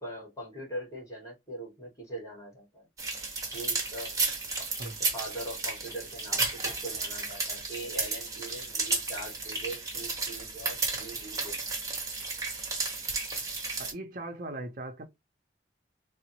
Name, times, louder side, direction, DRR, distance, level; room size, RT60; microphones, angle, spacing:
voice 1, 0.0-2.9 3.5-4.2 4.6-11.7, right 1 dB, 20° left, 1.8 m, -42 dB
sound 1, 3.0-13.9, right 3 dB, 20° right, 1.0 m, -33 dB
voice 2, 13.8-15.1, right 2 dB, 50° right, 0.6 m, -39 dB
3.9 x 2.0 x 2.9 m
head